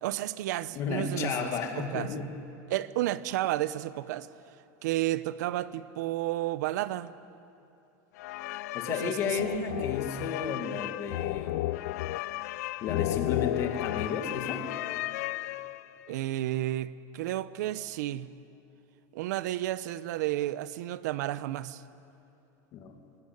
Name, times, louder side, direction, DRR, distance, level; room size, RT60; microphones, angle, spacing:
voice 1, 0.0-2.1 2.7-4.3 4.8-7.1 9.0-10.5 16.1-18.3 19.1-21.8, right 14 dB, 80° right, 0.8 m, -32 dB
voice 2, 0.8-2.2 8.7-11.7 12.8-14.6 22.7-22.9, left 6 dB, 30° left, 2.2 m, -33 dB
sound 1, 8.2-16.0, left 17 dB, 65° left, 0.5 m, -33 dB
24.5 x 18.0 x 9.9 m
supercardioid pair, 180°, 9 cm